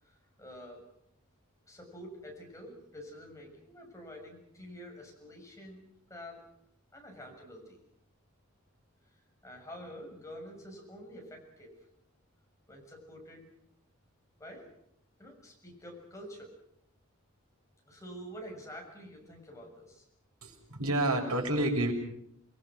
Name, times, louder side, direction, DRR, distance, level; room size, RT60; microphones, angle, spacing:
voice 1, 0.0-0.8 1.6-6.4 6.9-7.8 9.4-11.7 12.7-13.5 14.4-14.7 15.2-16.5 17.9-20.0, equal, 15° left, 0 dB, 6.9 m, -48 dB
voice 2, 20.4-21.9, right 1 dB, 85° right, 2 dB, 6.6 m, -29 dB
29.0 x 21.5 x 6.3 m, 0.74 s
head